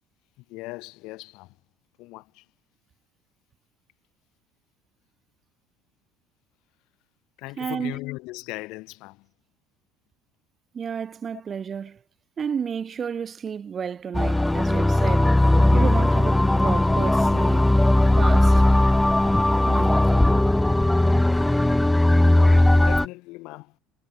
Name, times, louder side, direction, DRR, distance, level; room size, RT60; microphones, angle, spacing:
voice 1, 0.4-1.6 2.0-2.5 7.4-9.3 11.3-11.4 22.4-23.8, left 22 dB, 70° left, 2.1 m, -38 dB
voice 2, 7.6-8.0 10.7-12.0 12.4-15.4 15.7-17.7 18.2-18.6 19.7-20.0, right 7 dB, 35° right, 1.1 m, -31 dB
sound 1, 14.1-23.1, left 1 dB, 5° left, 0.4 m, -18 dB
supercardioid pair, 95°, 0 cm